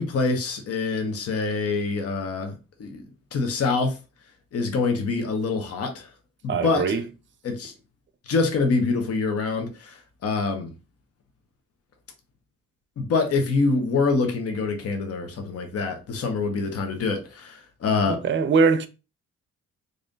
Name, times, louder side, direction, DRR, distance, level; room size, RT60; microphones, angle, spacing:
voice 1, 0.0-2.5 2.8-3.0 3.3-4.0 4.5-6.1 6.4-7.0 7.4-7.7 8.3-10.7 13.0-18.2, left 4 dB, 50° left, 0.9 m, -25 dB
voice 2, 6.5-7.0 18.1-18.9, right 5 dB, 40° right, 0.6 m, -21 dB
3.2 x 2.6 x 3.9 m
cardioid pair, 90°, 30 cm